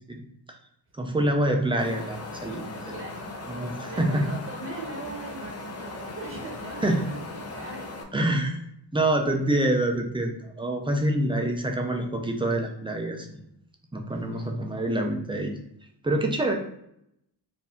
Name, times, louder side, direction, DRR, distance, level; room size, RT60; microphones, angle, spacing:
voice 1, 0.9-2.9 3.5-4.2 6.8-7.1 8.1-8.6 8.9-13.4 13.9-15.5 16.0-16.5, right 1 dB, 10° right, 2 dB, 0.5 m, -26 dB
Wind, 1.8-8.0, left 2 dB, 35° left, 0.6 m, -38 dB
voice 2, 3.9-7.9 14.1-14.7, right 2 dB, 30° right, -2 dB, 1.0 m, -40 dB
4.5 x 2.7 x 3.4 m, 0.76 s
wide cardioid pair, 150°, 45 cm